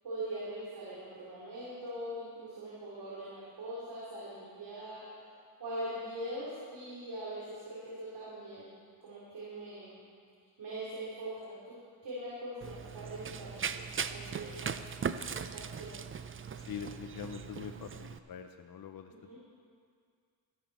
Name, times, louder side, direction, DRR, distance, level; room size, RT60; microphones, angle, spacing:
voice 1, 0.0-5.0 5.6-10.0 10.6-11.8 12.0-14.7 15.3-16.0 19.3-19.4, right 1 dB, 70° right, -9 dB, 3.8 m, -42 dB
Run, 12.6-18.2, right 6 dB, 30° right, 0.5 m, -39 dB
voice 2, 16.6-19.1, left 7 dB, 55° left, 6 dB, 0.8 m, -44 dB
14.0 x 11.5 x 4.3 m, 2.1 s
cardioid pair, 65°, 43 cm